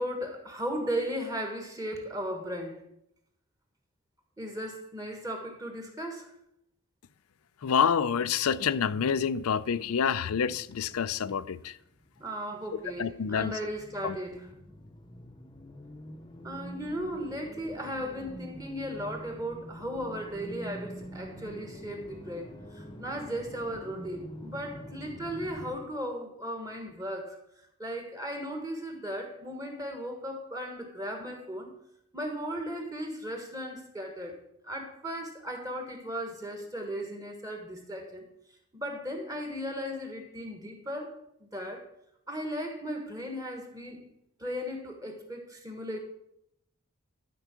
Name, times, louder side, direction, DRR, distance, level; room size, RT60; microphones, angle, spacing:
voice 1, 0.0-2.8 4.4-6.3 12.2-14.5 16.4-27.4 27.8-31.7 32.1-34.4 34.6-38.3 38.7-41.1 41.4-41.8 42.3-44.1 44.4-46.0, equal, 15° right, 1.4 m, -36 dB
voice 2, 7.6-11.8 13.0-13.5 14.0-14.2, left 7 dB, 75° left, 0.4 m, -27 dB
sound 1, 9.8-12.3 12.5-25.8, equal, 20° left, 0.7 m, -46 dB
12.5 x 4.7 x 6.1 m
head